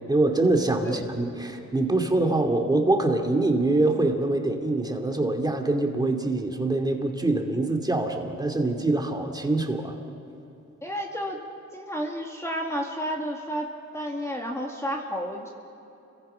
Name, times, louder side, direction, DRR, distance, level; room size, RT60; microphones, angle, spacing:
voice 1, 0.0-10.0, right 2 dB, 15° right, 3 dB, 2.7 m, -24 dB
voice 2, 10.8-11.4 11.7-13.7 13.9-15.5, equal, 10° left, 0 dB, 2.2 m, -31 dB
30.0 x 23.0 x 5.8 m, 2.9 s
cardioid pair, 90°, 30 cm